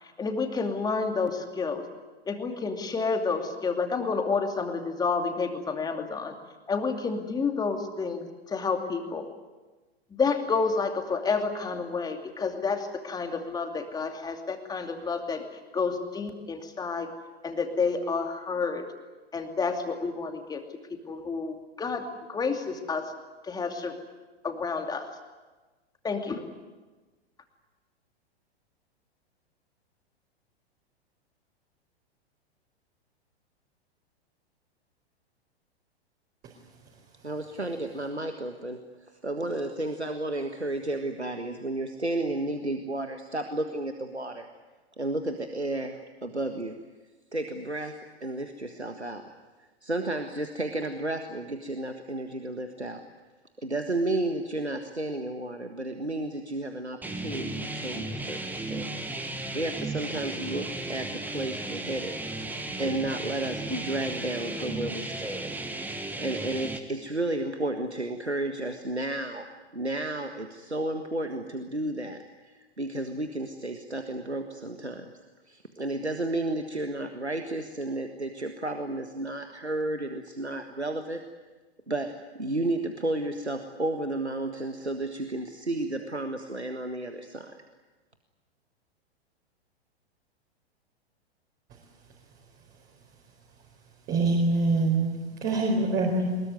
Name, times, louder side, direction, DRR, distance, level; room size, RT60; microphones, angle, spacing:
voice 1, 0.2-1.9 2.3-6.3 6.7-9.3 10.1-15.4 15.7-17.1 17.4-18.9 19.3-23.1 23.5-24.0 24.4-25.1 26.0-26.4, left 4 dB, 10° left, 5 dB, 2.6 m, -30 dB
voice 2, 37.2-38.8 39.2-44.5 45.0-46.7 47.3-49.2 49.6-53.0 53.6-58.9 59.5-62.2 62.8-65.5 66.2-69.5 69.7-75.1 75.5-81.2 81.9-87.6, right 2 dB, 90° right, 6 dB, 1.7 m, -32 dB
sound 1, 57.0-66.8, right 2 dB, 5° right, 1.7 m, -35 dB
voice 3, 94.1-96.4, right 2 dB, 25° right, -1 dB, 4.5 m, -25 dB
23.0 x 21.5 x 9.4 m, 1.3 s
figure-of-eight pair, 105°, 32 cm